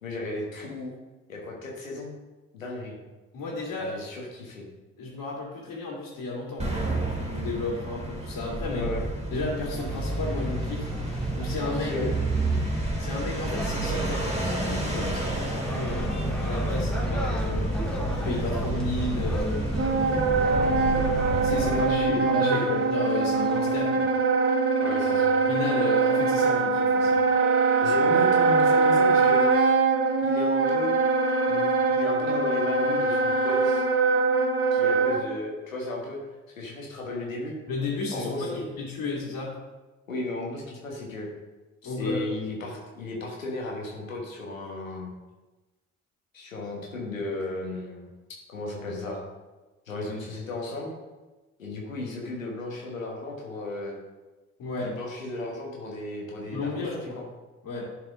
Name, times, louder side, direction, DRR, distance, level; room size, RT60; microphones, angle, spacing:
voice 1, 0.0-0.9 1.3-2.2 2.5-3.0 3.8-4.7 8.7-9.1 11.6-12.1 21.7-22.8 24.8-25.4 27.8-29.4 30.2-31.0 31.5-33.9 34.7-36.2 36.5-37.5 38.1-38.7 40.1-41.3 41.8-45.1 46.3-48.1 48.5-49.2 49.9-50.9 51.6-53.9 54.8-57.2, left 2 dB, 90° left, -2 dB, 1.3 m, -34 dB
voice 2, 3.3-4.0 5.0-8.9 9.3-10.9 11.3-12.1 13.0-17.8 18.1-19.7 20.4-21.0 21.3-24.1 25.5-27.2 37.7-39.6 41.8-42.2 54.6-54.9 56.5-57.2 57.6-57.8, left 3 dB, 55° left, -6 dB, 2.2 m, -33 dB
sound 1, 6.6-22.1, right 2 dB, 15° right, 2.1 m, -29 dB
sound 2, 9.8-23.8, equal, ahead, 1.6 m, -40 dB
Wind instrument woodwind instrument, 19.7-35.2, right 4 dB, 35° right, 1.2 m, -23 dB
11.0 x 4.8 x 3.7 m, 1.2 s
figure-of-eight pair, 40°, 39 cm